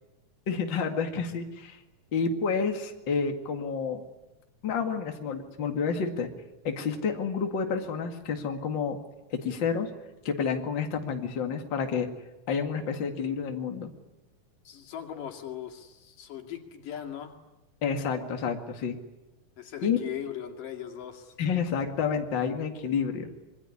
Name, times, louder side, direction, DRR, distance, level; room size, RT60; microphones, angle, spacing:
voice 1, 0.5-1.8 2.1-4.0 4.6-6.3 6.6-9.0 9.3-9.9 10.2-12.1 12.5-13.9 17.8-19.0 19.8-20.0 21.4-23.3, left 6 dB, 40° left, 4 dB, 2.5 m, -29 dB
voice 2, 14.7-17.3 19.6-21.4, left 10 dB, 85° left, 3 dB, 4.1 m, -39 dB
26.0 x 23.0 x 9.8 m, 1.0 s
omnidirectional pair, 3.7 m